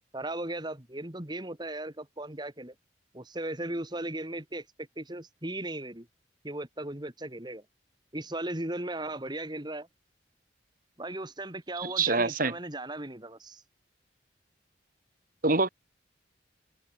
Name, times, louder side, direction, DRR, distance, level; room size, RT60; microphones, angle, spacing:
voice 1, 0.1-2.7 3.1-6.1 6.4-7.6 8.1-9.9 11.0-13.6, right 1 dB, 25° right, 2.4 m, -37 dB
voice 2, 11.8-12.5 15.4-15.7, right 3 dB, 50° right, 2.0 m, -25 dB
head